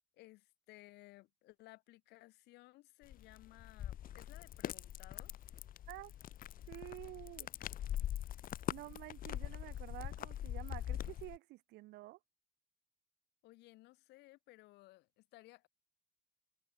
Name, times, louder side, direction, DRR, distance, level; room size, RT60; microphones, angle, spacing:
voice 1, 0.1-5.3 13.4-15.7, left 19 dB, 85° left, 2.2 m, -59 dB
sound 1, 3.0-11.4, left 11 dB, 55° left, 1.4 m, -43 dB
voice 2, 6.7-7.5 8.7-12.2, right 19 dB, 85° right, 3.1 m, -50 dB
cardioid pair, 110°, 17 cm